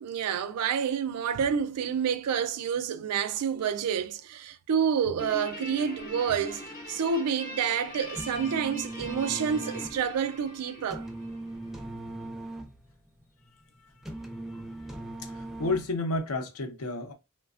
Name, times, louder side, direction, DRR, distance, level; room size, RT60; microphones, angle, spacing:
voice 1, 0.0-6.6 6.9-11.1, right 7 dB, 90° right, 0.4 m, -28 dB
Guitar, 5.2-11.9, left 1 dB, 40° left, 1.0 m, -42 dB
sound 1, 8.0-16.2, right 1 dB, ahead, 0.4 m, -40 dB
voice 2, 14.5-15.0 15.2-17.1, left 2 dB, 75° left, 0.7 m, -32 dB
3.2 x 2.2 x 2.4 m
head